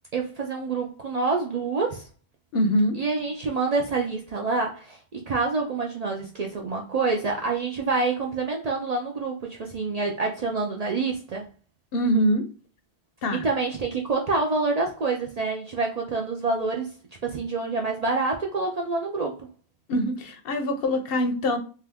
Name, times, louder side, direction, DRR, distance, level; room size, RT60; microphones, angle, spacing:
voice 1, 0.1-2.1 3.0-11.5 13.3-16.9 17.2-19.5, right 3 dB, 55° right, 1 dB, 0.5 m, -27 dB
voice 2, 2.5-3.0 11.9-12.5 13.2-13.5 19.9-21.6, equal, 65° left, 7 dB, 0.8 m, -23 dB
2.7 x 2.4 x 3.4 m, 0.37 s
omnidirectional pair, 1.1 m